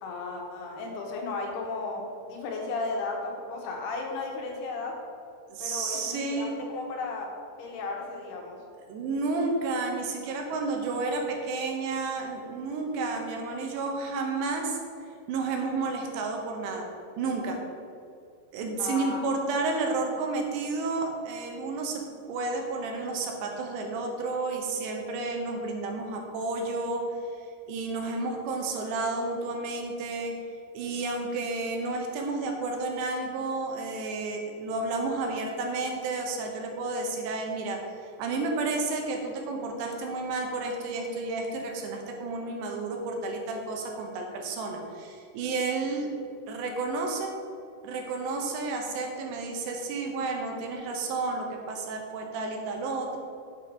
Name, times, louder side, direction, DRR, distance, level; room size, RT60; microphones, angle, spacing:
voice 1, 0.0-5.0 5.6-7.3 7.6-8.6 18.8-19.2, left 3 dB, 75° left, 0 dB, 2.9 m, -34 dB
voice 2, 5.5-6.6 8.9-14.8 15.3-16.9 17.2-17.6 18.5-22.0 22.3-27.0 27.3-27.4 27.7-30.3 30.7-46.1 46.5-47.3 47.8-53.2, right 3 dB, 80° right, 2 dB, 3.2 m, -31 dB
7.9 x 5.5 x 6.4 m, 2.4 s
omnidirectional pair, 5.0 m